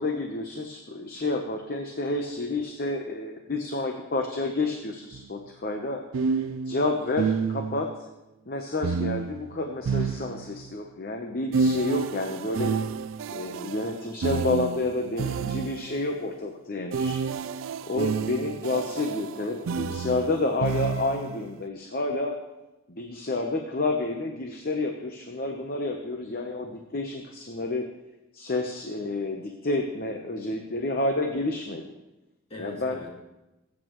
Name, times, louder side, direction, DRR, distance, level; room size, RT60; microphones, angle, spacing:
voice 1, 0.0-6.0 6.7-7.9 8.5-12.7 13.3-17.2 17.9-22.4 22.9-27.9 28.3-31.8 32.6-33.0, left 2 dB, 45° left, 3 dB, 0.8 m, -29 dB
sound 1, 5.1-5.3 6.1-7.9 8.8-10.7 11.5-16.0 16.9-21.4, right 5 dB, 70° right, 0.3 m, -30 dB
voice 2, 6.1-6.6 11.4-11.8 32.5-33.1, left 1 dB, 30° left, -2 dB, 2.2 m, -43 dB
20.0 x 8.6 x 3.1 m, 0.98 s
head